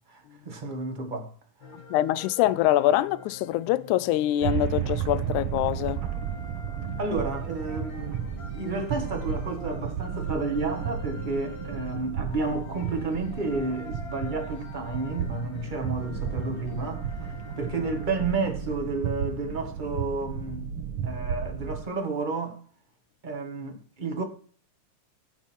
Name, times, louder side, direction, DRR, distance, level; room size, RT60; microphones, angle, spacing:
voice 1, 0.1-1.3 6.9-8.3 8.5-17.1 17.6-20.7 21.0-22.6 23.2-24.2, right 3 dB, 35° right, 0.7 m, -31 dB
sound 1, 1.6-18.9, left 4 dB, 45° left, 2.1 m, -46 dB
voice 2, 1.7-6.0, left 13 dB, 80° left, 1.9 m, -24 dB
sound 2, 4.4-21.8, right 7 dB, 60° right, 1.7 m, -34 dB
sound 3, 4.4-10.6, right 15 dB, 80° right, 1.8 m, -34 dB
15.5 x 5.3 x 4.4 m
omnidirectional pair, 3.6 m